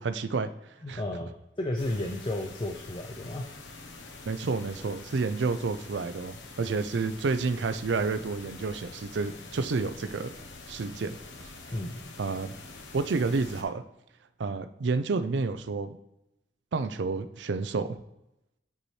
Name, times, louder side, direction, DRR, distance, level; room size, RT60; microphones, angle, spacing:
voice 1, 0.0-1.0 4.2-10.3 10.7-11.5 12.2-12.5 12.9-13.8 14.4-16.0 16.7-18.0, right 4 dB, 75° right, 12 dB, 0.5 m, -30 dB
voice 2, 0.8-3.5 11.7-12.1, left 1 dB, 25° left, 2 dB, 0.5 m, -33 dB
sound 1, 1.8-13.6, left 3 dB, 90° left, 0.9 m, -46 dB
8.1 x 4.2 x 3.1 m, 0.87 s
head